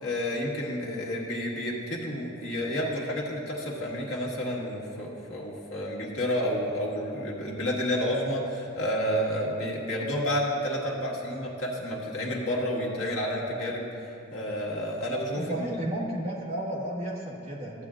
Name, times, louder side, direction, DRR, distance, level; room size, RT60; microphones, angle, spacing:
voice 1, 0.0-13.9 14.3-15.8, equal, 85° left, -3 dB, 1.5 m, -30 dB
voice 2, 15.3-17.9, right 1 dB, 30° right, -5 dB, 1.6 m, -33 dB
14.0 x 8.6 x 2.5 m, 2.8 s
head